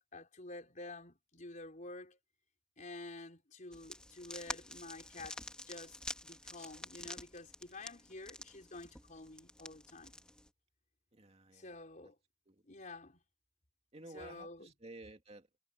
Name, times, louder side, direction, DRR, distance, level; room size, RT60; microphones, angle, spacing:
voice 1, 0.0-2.2 2.8-6.0 6.2-10.2 11.5-12.2 12.7-13.2 14.0-14.7, left 2 dB, 45° left, 4.4 m, -50 dB
sound 1, 3.7-10.5, left 1 dB, 5° left, 2.3 m, -48 dB
voice 2, 11.1-11.7 12.5-12.6 13.9-15.6, right 2 dB, 35° right, 2.4 m, -53 dB
head